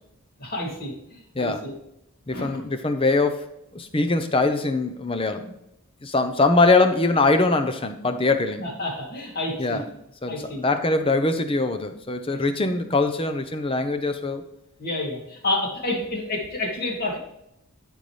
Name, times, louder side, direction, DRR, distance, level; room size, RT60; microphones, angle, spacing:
voice 1, 0.4-1.7 2.3-2.6 8.6-9.8 10.3-10.6 12.3-12.4 14.8-17.2, left 2 dB, 40° left, -1 dB, 2.6 m, -29 dB
voice 2, 2.3-5.6 6.0-8.7 9.6-9.8 10.2-14.4, left 3 dB, 25° left, 8 dB, 0.8 m, -22 dB
13.0 x 5.4 x 3.3 m, 0.81 s
head